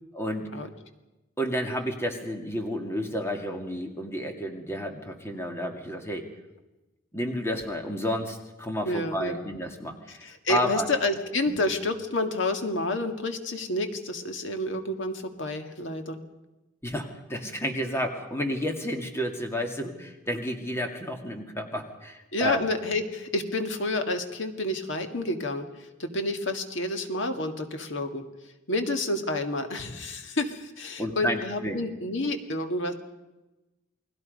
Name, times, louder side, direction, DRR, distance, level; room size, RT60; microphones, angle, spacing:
voice 1, 0.1-0.5 1.4-6.3 7.1-10.9 11.5-11.6 16.8-22.6 31.0-31.8, equal, 10° left, 3 dB, 2.2 m, -31 dB
voice 2, 8.8-9.4 10.1-16.2 22.3-28.2 28.7-32.9, left 2 dB, 60° left, 6 dB, 2.0 m, -29 dB
29.0 x 20.0 x 5.4 m, 1.0 s
head